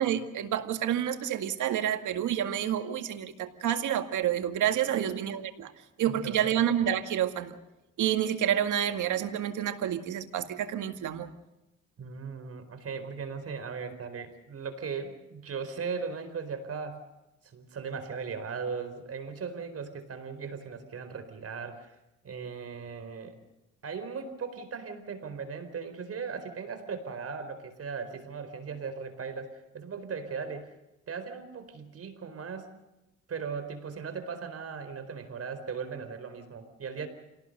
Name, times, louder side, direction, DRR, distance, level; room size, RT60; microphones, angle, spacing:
voice 1, 0.0-5.7 6.0-7.6 8.0-11.3, right 10 dB, 80° right, 7 dB, 2.0 m, -29 dB
voice 2, 4.8-5.2 6.1-6.6 12.0-17.1 17.4-21.9 22.2-23.4 23.8-30.7 31.1-32.7 33.3-37.1, right 5 dB, 50° right, 10 dB, 4.4 m, -38 dB
27.5 x 18.5 x 6.7 m, 0.96 s
cardioid pair, 90°, 30 cm